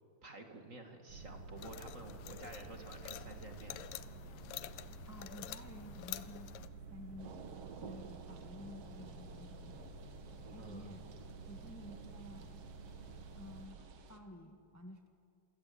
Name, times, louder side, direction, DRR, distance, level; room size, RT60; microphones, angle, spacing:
voice 1, 0.2-3.9 10.6-10.9, right 2 dB, 25° right, 4 dB, 2.0 m, -51 dB
sound 1, 1.1-13.7, right 3 dB, 80° right, 4.8 m, -51 dB
sound 2, 1.6-6.7, left 14 dB, 85° left, 2.5 m, -48 dB
voice 2, 5.1-7.4 7.8-9.8 10.4-11.0 11.5-12.6 13.3-15.1, left 1 dB, 20° left, 4 dB, 0.4 m, -52 dB
sound 3, 7.2-14.2, right 6 dB, 55° right, 2.1 m, -55 dB
27.5 x 25.0 x 8.6 m, 2.3 s
omnidirectional pair, 3.9 m